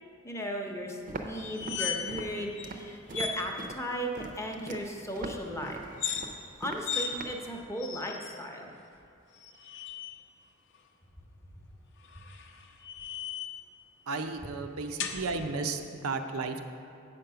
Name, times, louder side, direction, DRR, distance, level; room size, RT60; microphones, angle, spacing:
voice 1, 0.2-5.8 6.6-8.7, equal, 15° left, 1 dB, 0.7 m, -36 dB
Walk footsteps, 1.1-7.5, right 2 dB, 40° right, 0.6 m, -42 dB
sound 1, 1.4-2.3 2.6-2.7 3.1-3.4 5.9-6.2 6.8-7.1 7.8-8.4 9.3-10.1 12.0-13.6 15.0-15.2, left 7 dB, 60° left, 0.6 m, -36 dB
voice 2, 14.1-16.6, right 3 dB, 85° right, 6 dB, 0.6 m, -33 dB
8.2 x 5.2 x 5.7 m, 2.7 s
head